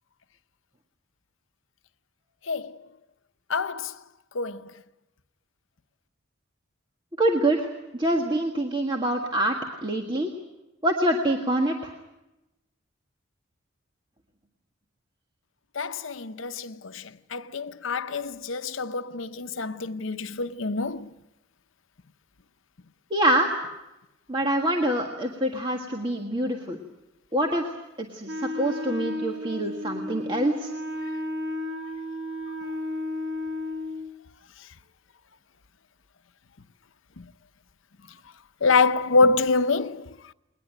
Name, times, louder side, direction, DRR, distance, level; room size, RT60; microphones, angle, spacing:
voice 1, 3.5-3.9 4.3-4.6 15.8-17.0 17.3-21.1 38.6-40.1, left 4 dB, 75° left, 0.8 m, -25 dB
voice 2, 7.2-7.7 8.0-10.3 10.8-11.9 23.1-23.5 24.3-26.8 27.3-27.6 28.0-30.7, right 1 dB, 25° right, 1.7 m, -25 dB
Wind instrument woodwind instrument, 28.3-34.1, left 1 dB, 75° right, 2.1 m, -33 dB
21.0 x 20.5 x 9.3 m
head